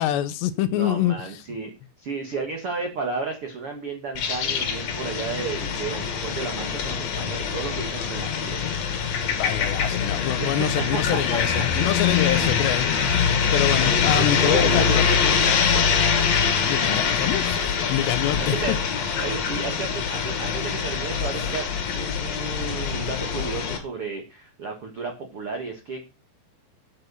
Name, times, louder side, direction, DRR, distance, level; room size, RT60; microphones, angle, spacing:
voice 1, 0.0-1.4 9.3-15.4 16.7-18.8, left 12 dB, 80° left, 2.8 m, -26 dB
voice 2, 0.7-1.7 2.0-8.6 10.4-11.6 14.2-16.1 18.4-18.7 19.2-21.6 21.9-26.0, right 4 dB, 70° right, 1.3 m, -33 dB
sound 1, 4.2-23.8, left 6 dB, 55° left, 2.1 m, -24 dB
8.9 x 7.6 x 6.9 m
omnidirectional pair, 5.3 m